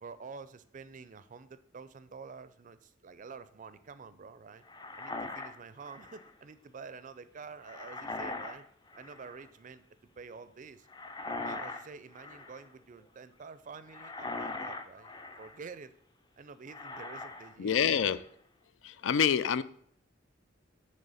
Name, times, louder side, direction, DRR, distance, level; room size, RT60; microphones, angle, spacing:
voice 1, 0.0-4.6 5.0-8.7 8.9-9.8 10.2-10.9 11.2-15.9 16.4-17.8, right 5 dB, 45° right, 13 dB, 0.4 m, -48 dB
sound 1, 4.7-6.3 7.6-8.6 8.9-9.4 10.9-11.9 12.1-12.7 13.9-15.6 16.7-17.5 17.9-18.3, left 3 dB, 25° left, 0.5 m, -41 dB
voice 2, 17.6-18.2 18.8-19.6, left 7 dB, 80° left, 15 dB, 0.4 m, -27 dB
7.3 x 3.3 x 5.5 m, 0.63 s
head